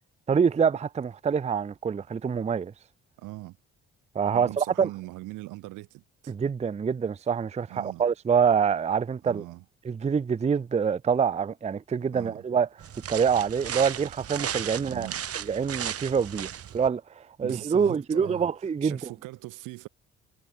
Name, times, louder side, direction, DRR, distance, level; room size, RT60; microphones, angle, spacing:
voice 1, 0.3-2.7 4.1-4.9 6.3-9.4 9.8-12.7 13.1-15.1 15.4-16.5 16.7-19.1, right 6 dB, 20° right, 0.5 m, -26 dB
voice 2, 3.2-3.6 4.3-6.3 7.7-8.1 9.2-9.6 12.1-12.4 14.8-15.2 17.4-18.5 18.8-19.9, right 19 dB, 85° right, 2.1 m, -40 dB
sound 1, 12.8-16.9, right 9 dB, 50° right, 1.2 m, -35 dB
supercardioid pair, 60°, 30 cm